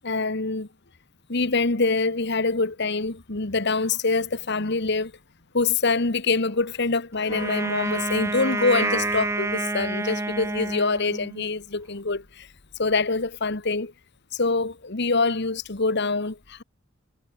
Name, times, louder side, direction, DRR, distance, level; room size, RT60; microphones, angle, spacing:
voice 1, 0.0-0.7 1.3-5.1 5.5-12.5 12.8-13.9 14.3-16.6, left 3 dB, 60° left, 1.6 m, -25 dB
Wind instrument woodwind instrument, 7.3-11.5, right 2 dB, 15° right, 0.8 m, -28 dB
head